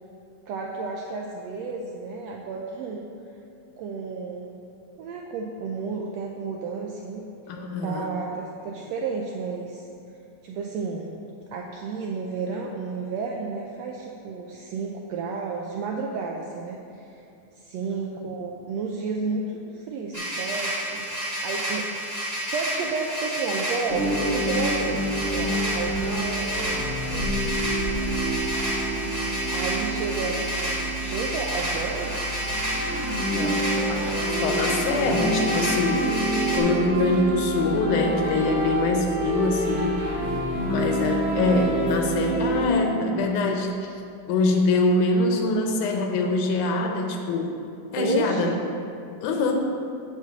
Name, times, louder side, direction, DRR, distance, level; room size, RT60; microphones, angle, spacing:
voice 1, 0.5-3.1 3.8-4.6 5.0-7.3 7.8-9.9 10.4-11.2 11.5-17.2 17.6-21.9 22.5-27.3 29.5-32.2 36.3-36.6 48.0-48.6, right 4 dB, 80° right, 0 dB, 1.5 m, -32 dB
voice 2, 7.5-8.1 18.0-18.1 33.3-36.2 36.5-40.1 40.7-43.9 44.3-47.5 47.9-48.5 49.2-49.5, left 2 dB, 80° left, 3 dB, 2.3 m, -24 dB
sound 1, 20.1-36.6, right 1 dB, 20° right, 1.2 m, -30 dB
sound 2, 23.9-42.7, right 1 dB, 60° right, 0.8 m, -27 dB
8.0 x 4.6 x 7.0 m, 2.7 s
omnidirectional pair, 3.6 m